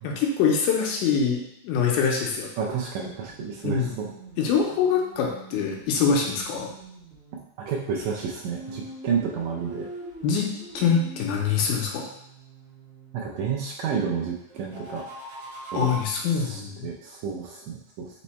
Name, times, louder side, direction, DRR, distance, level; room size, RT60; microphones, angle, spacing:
voice 1, 0.0-2.5 3.6-3.9 4.4-6.7 10.2-12.0 15.7-16.9, left 6 dB, 85° left, 0 dB, 2.2 m, -24 dB
voice 2, 2.6-4.1 7.6-9.9 13.1-15.0 15.7-15.9 16.3-18.2, right 6 dB, 80° right, -2 dB, 1.7 m, -30 dB
sound 1, 3.1-7.4 8.4-13.3 14.5-16.0, right 2 dB, 60° right, 1.4 m, -43 dB
5.3 x 2.1 x 4.1 m, 0.76 s
omnidirectional pair, 3.6 m